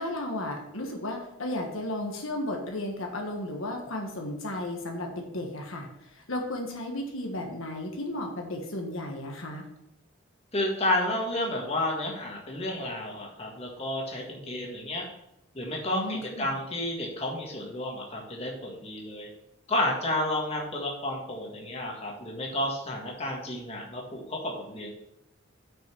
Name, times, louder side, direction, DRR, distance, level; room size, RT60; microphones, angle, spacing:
voice 1, 0.0-5.9 6.1-9.6 15.9-16.5, left 1 dB, 70° left, 2 dB, 1.5 m, -34 dB
voice 2, 10.5-15.1 15.5-19.3 19.7-24.9, left 1 dB, 30° left, -1 dB, 1.6 m, -31 dB
6.5 x 5.7 x 6.1 m, 0.80 s
head